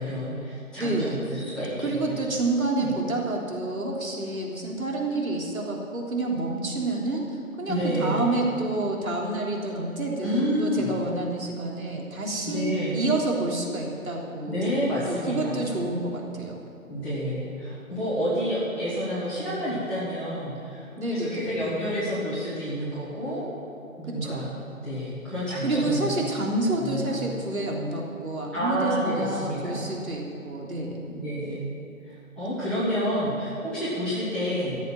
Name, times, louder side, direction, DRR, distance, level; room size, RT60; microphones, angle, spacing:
voice 1, 0.0-2.1 2.7-2.9 7.7-8.2 10.2-10.9 12.5-13.0 14.5-15.7 16.9-23.4 24.0-24.5 24.8-26.2 26.8-27.2 28.5-29.9 31.1-31.6 32.1-34.8, equal, ahead, -13 dB, 1.4 m, -29 dB
voice 2, 0.8-1.2 1.8-7.3 7.6-14.6 15.1-16.6 21.0-21.6 24.1-24.5 25.6-31.1, right 2 dB, 75° right, -2 dB, 3.6 m, -28 dB
14.5 x 8.0 x 9.3 m, 2.7 s
figure-of-eight pair, 160°, 42 cm